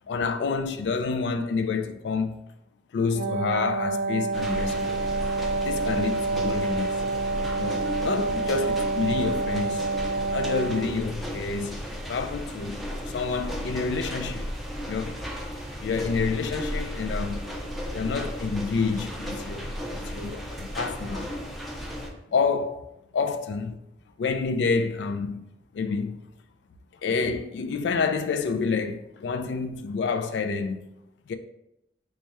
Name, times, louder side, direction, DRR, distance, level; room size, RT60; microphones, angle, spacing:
voice 1, 0.1-2.4 2.9-5.0 5.6-7.0 7.6-9.9 10.3-14.5 14.9-15.2 15.8-17.4 17.9-21.3 22.3-22.8 23.1-23.8 24.2-25.5 25.7-26.2 27.0-30.8 31.3-31.4, left 4 dB, 80° left, 0.3 m, -28 dB
Wind instrument woodwind instrument, 3.0-11.0, right 3 dB, 75° right, 0.3 m, -28 dB
sound 1, 4.3-22.1, equal, ahead, 0.5 m, -35 dB
3.2 x 2.3 x 4.1 m
head